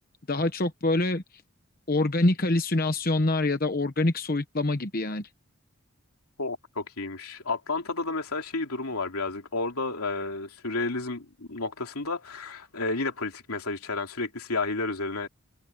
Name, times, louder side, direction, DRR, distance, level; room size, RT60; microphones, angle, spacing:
voice 1, 0.3-1.2 1.9-5.3, left 2 dB, 40° left, 1.0 m, -25 dB
voice 2, 6.4-15.3, left 3 dB, 85° left, 3.1 m, -31 dB
head